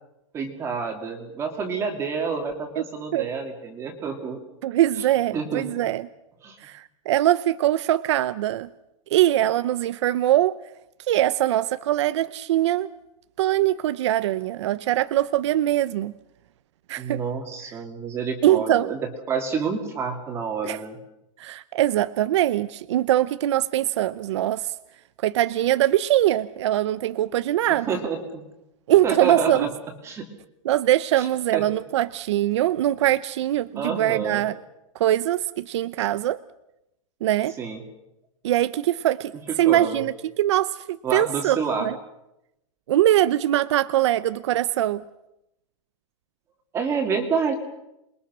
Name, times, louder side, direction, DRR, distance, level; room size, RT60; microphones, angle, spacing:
voice 1, 0.3-4.4 5.3-5.6 6.4-6.6 17.0-19.0 19.3-21.0 27.7-28.5 29.0-29.7 30.0-30.3 31.2-31.3 31.5-31.6 33.8-34.4 37.6-37.8 39.5-40.0 41.0-41.9 46.7-47.5, right 5 dB, 15° right, 4 dB, 2.4 m, -28 dB
voice 2, 4.6-6.1 6.6-8.7 9.1-10.6 11.1-12.9 13.4-16.1 16.9-17.2 18.4-18.9 20.6-20.8 21.4-24.7 25.2-28.0 28.9-29.7 30.6-34.5 34.9-36.4 37.2-37.6 38.4-42.0 42.9-45.0, right 13 dB, 60° right, 14 dB, 0.8 m, -22 dB
27.5 x 22.0 x 6.2 m, 0.88 s
supercardioid pair, 170°, 17 cm